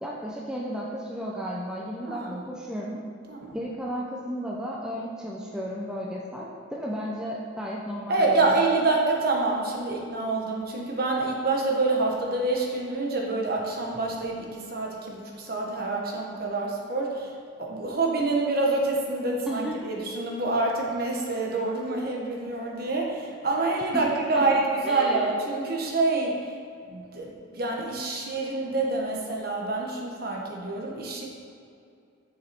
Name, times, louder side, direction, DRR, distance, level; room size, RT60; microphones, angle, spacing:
voice 1, 0.0-3.0 3.5-8.6 19.5-19.9 23.9-25.3, equal, 5° right, -4 dB, 0.7 m, -34 dB
voice 2, 2.0-2.4 3.3-3.6 8.1-26.5 26.9-31.2, right 3 dB, 50° right, -1 dB, 1.5 m, -27 dB
10.5 x 6.6 x 4.4 m, 2.4 s
head